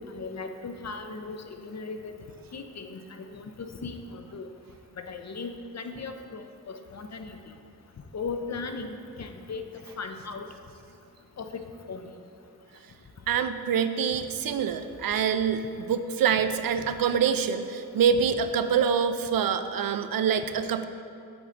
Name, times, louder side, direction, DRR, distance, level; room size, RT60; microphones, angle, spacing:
voice 1, 0.0-2.2 2.5-4.5 5.0-7.3 8.1-9.6 10.0-10.5 11.4-11.6 11.9-12.0, left 4 dB, 45° left, 7 dB, 0.7 m, -37 dB
voice 2, 13.3-20.9, right 7 dB, 65° right, 10 dB, 0.5 m, -25 dB
8.0 x 4.9 x 4.0 m, 2.5 s
cardioid pair, 50°, 38 cm